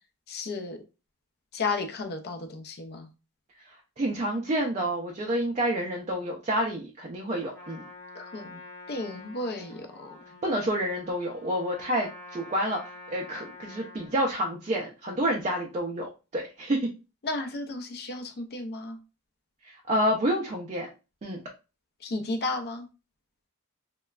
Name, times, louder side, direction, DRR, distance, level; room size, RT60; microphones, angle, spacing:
voice 1, 0.3-0.8 1.5-3.1 8.2-8.6 8.9-10.2 17.2-19.0 22.0-22.9, left 3 dB, 45° left, 5 dB, 0.5 m, -33 dB
voice 2, 3.6-7.8 10.4-12.8 13.1-16.9 19.6-20.9 21.2-21.4, right 1 dB, 30° right, 0 dB, 0.4 m, -29 dB
Trumpet, 7.4-14.2, left 2 dB, 10° left, 0.8 m, -47 dB
3.0 x 2.1 x 2.3 m, 0.30 s
head